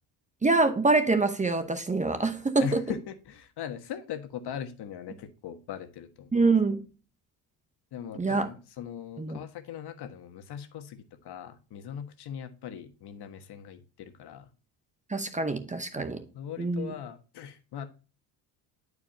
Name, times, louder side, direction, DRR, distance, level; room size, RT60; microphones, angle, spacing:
voice 1, 0.4-2.8 6.3-6.8 8.2-8.5 9.2-9.4 15.1-16.3 16.6-16.9, right 3 dB, 15° right, 0.8 m, -25 dB
voice 2, 2.6-6.3 7.9-14.5 16.3-17.9, left 9 dB, 60° left, 1.4 m, -40 dB
11.0 x 4.8 x 2.7 m
cardioid pair, 105°, 46 cm